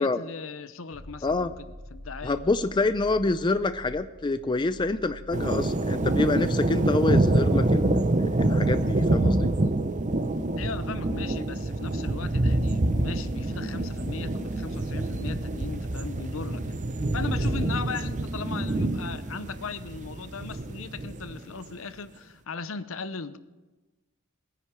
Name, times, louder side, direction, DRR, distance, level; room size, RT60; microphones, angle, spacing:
voice 1, 0.0-2.4 10.6-16.8 17.1-23.4, left 5 dB, 70° left, 0.7 m, -38 dB
sound 1, 0.9-14.4 17.1-17.2, left 1 dB, 40° left, 5.2 m, -49 dB
voice 2, 2.2-9.5, left 3 dB, 20° left, 0.4 m, -27 dB
sound 2, 5.3-21.4, right 2 dB, 35° right, 0.7 m, -26 dB
20.5 x 9.9 x 4.9 m
head